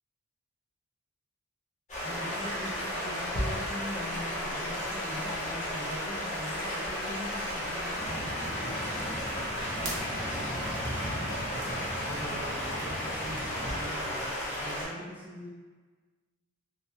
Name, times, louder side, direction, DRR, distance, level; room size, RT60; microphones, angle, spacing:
Stream, 1.9-14.8, equal, 35° left, 0.8 m, -34 dB
voice 1, 2.0-5.4 5.7-11.6 12.1-15.5, equal, 10° right, -6 dB, 0.4 m, -44 dB
Human voice, 3.0-8.2, left 2 dB, 65° left, 0.4 m, -46 dB
sound 1, 7.9-13.8, equal, 75° right, 0.8 m, -40 dB
3.2 x 2.2 x 2.6 m, 1.4 s
head